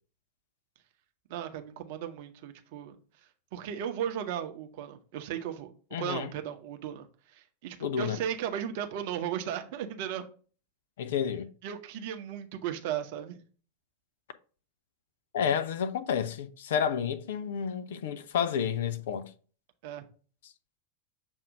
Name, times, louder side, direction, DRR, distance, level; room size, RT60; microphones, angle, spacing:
voice 1, 1.3-3.0 3.5-5.7 6.0-7.1 7.3-10.3 11.6-13.4 19.8-20.0, right 9 dB, 50° right, 0.8 m, -36 dB
voice 2, 5.9-6.3 7.8-8.2 11.0-11.5 15.3-19.3, left 8 dB, 55° left, 0.6 m, -30 dB
7.1 x 2.7 x 5.1 m
figure-of-eight pair, 90°, 0 cm